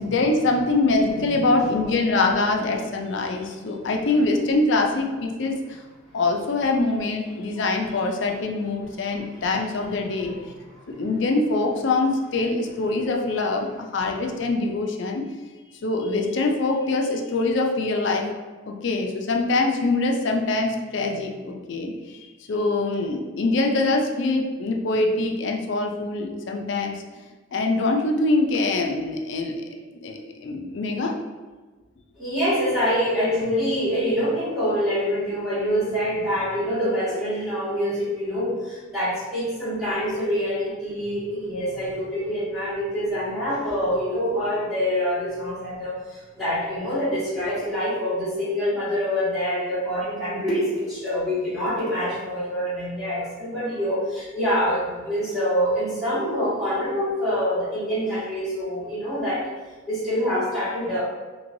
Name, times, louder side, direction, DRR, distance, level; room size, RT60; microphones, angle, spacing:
voice 1, 0.0-5.8 6.1-10.4 11.0-15.2 15.8-18.3 18.7-27.0 27.5-29.6 29.9-31.1, left 2 dB, 60° left, 2 dB, 0.4 m, -24 dB
voice 2, 32.1-59.5 59.9-61.0, equal, ahead, -13 dB, 1.4 m, -25 dB
3.0 x 2.9 x 2.6 m, 1.3 s
head